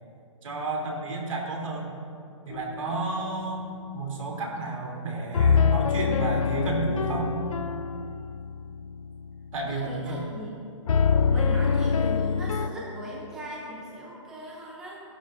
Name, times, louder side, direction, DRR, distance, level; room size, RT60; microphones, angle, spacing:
voice 1, 0.4-1.9 2.4-3.7 3.9-7.3 9.5-10.2, right 3 dB, 75° right, -1 dB, 3.0 m, -31 dB
sound 1, 2.5-3.1 5.3-10.2 10.9-12.7, left 6 dB, 80° left, 0.6 m, -25 dB
voice 2, 9.7-10.6 11.3-15.0, equal, 5° right, -4 dB, 0.6 m, -38 dB
15.5 x 11.5 x 2.6 m, 2.4 s
hypercardioid pair, 175°, 17 cm